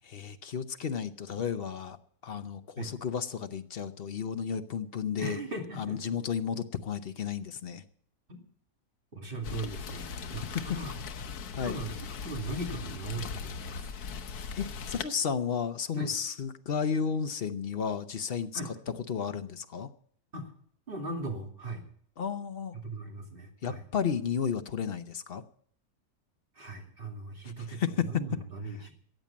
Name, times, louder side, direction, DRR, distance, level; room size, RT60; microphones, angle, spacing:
voice 1, 0.0-2.0 2.2-5.4 5.8-7.8 10.3-10.6 11.5-11.8 14.5-18.7 19.1-19.9 22.2-22.8 23.6-25.4 27.4-28.2, left 7 dB, 50° left, 10 dB, 0.9 m, -33 dB
voice 2, 5.2-6.0 8.3-8.4 9.1-11.0 11.6-13.9 15.9-16.1 18.5-18.7 20.3-20.5 20.9-21.9 22.7-23.8 26.5-28.9, right 2 dB, 35° right, 2 dB, 2.8 m, -39 dB
Rain, 9.4-15.0, left 5 dB, 85° left, 1.5 m, -39 dB
14.5 x 8.9 x 8.5 m, 0.62 s
omnidirectional pair, 1.6 m